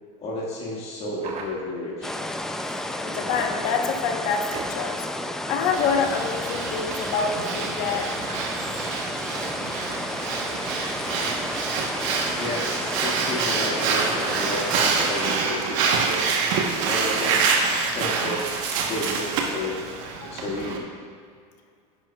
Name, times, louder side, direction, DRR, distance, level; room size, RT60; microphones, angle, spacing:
voice 1, 0.2-2.2 12.4-16.3 16.8-17.4 17.9-19.8 20.3-20.9, left 1 dB, 40° left, -4 dB, 1.8 m, -32 dB
sound 1, 1.2-2.0 3.3-3.8 4.5-5.0 5.8-6.2 6.9-7.7 8.3-9.0 9.9-10.0 10.3-10.4 11.0-11.3, right 4 dB, 40° right, 1.0 m, -41 dB
sound 2, 2.0-15.4, left 1 dB, 5° left, 0.3 m, -32 dB
voice 2, 3.1-5.1 5.5-8.2 9.8-10.0 18.2-18.3 20.2-20.4, left 5 dB, 60° left, 3 dB, 1.1 m, -27 dB
Breathing, 5.7-20.8, right 5 dB, 70° right, 1.1 m, -27 dB
9.9 x 9.5 x 2.3 m, 2.2 s
supercardioid pair, 135°, 17 cm